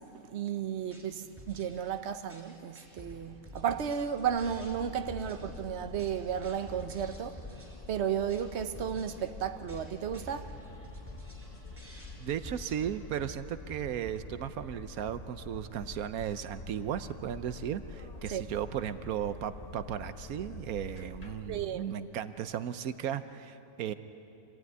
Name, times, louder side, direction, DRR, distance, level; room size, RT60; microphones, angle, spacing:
voice 1, 0.0-10.6 18.3-18.4 21.5-21.9, right 8 dB, 55° right, 1.1 m, -34 dB
sound 1, 0.8-12.8, equal, 10° right, 5.5 m, -51 dB
sound 2, 4.2-21.7, left 3 dB, 30° left, 1.1 m, -46 dB
voice 2, 12.2-23.9, right 9 dB, 85° right, 1.2 m, -36 dB
26.5 x 17.0 x 9.4 m
omnidirectional pair, 1.5 m